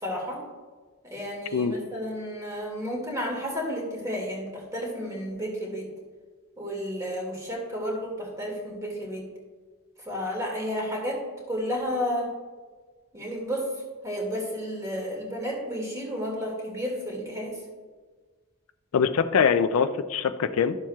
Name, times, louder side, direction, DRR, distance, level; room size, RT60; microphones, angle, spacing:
voice 1, 0.0-0.4 1.0-5.9 6.6-9.2 10.1-11.2 11.5-12.3 13.1-13.7 14.0-17.6, equal, 15° right, -2 dB, 2.0 m, -32 dB
voice 2, 18.9-20.8, left 6 dB, 80° left, 11 dB, 0.4 m, -23 dB
11.5 x 7.2 x 2.3 m, 1.4 s
head